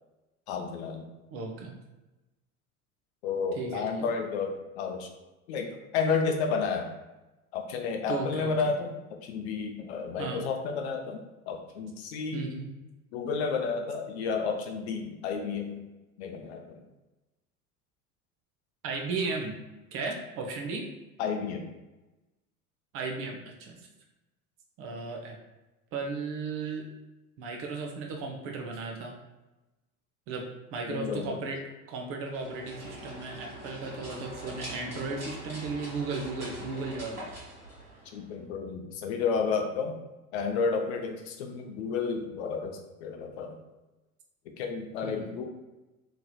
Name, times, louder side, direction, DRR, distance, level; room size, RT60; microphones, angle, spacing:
voice 1, 0.5-1.1 3.2-5.1 5.5-6.9 7.5-11.2 11.5-12.4 13.1-15.8 16.2-16.8 21.2-21.7 30.9-31.4 38.1-40.0 40.3-43.6 44.5-45.4, left 5 dB, 50° left, 4 dB, 0.5 m, -31 dB
voice 2, 1.3-1.7 3.5-4.1 8.1-8.7 10.2-10.4 12.3-12.7 18.8-19.6 19.9-20.9 22.9-23.8 24.8-25.4 25.9-26.8 27.4-29.2 30.3-30.5 30.7-31.6 31.9-37.3 45.0-45.4, right 4 dB, 30° right, 1 dB, 0.5 m, -35 dB
sound 1, 32.2-38.4, equal, 85° right, 1.3 m, -43 dB
2.9 x 2.9 x 2.3 m, 1.1 s
figure-of-eight pair, 75°, 44 cm